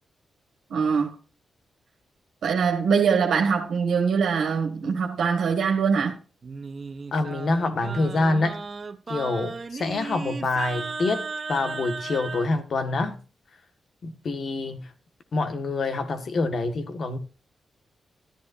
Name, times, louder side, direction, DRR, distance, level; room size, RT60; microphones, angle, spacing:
voice 1, 0.7-1.1 2.4-6.1, right 6 dB, 85° right, 1.8 m, -23 dB
Singing, 6.4-12.5, right 4 dB, 40° right, 1.0 m, -35 dB
voice 2, 7.1-8.6 9.1-13.2 14.0-14.9 15.3-17.2, left 3 dB, 60° left, 1.6 m, -26 dB
13.0 x 11.0 x 2.6 m
cardioid pair, 90°, 0 cm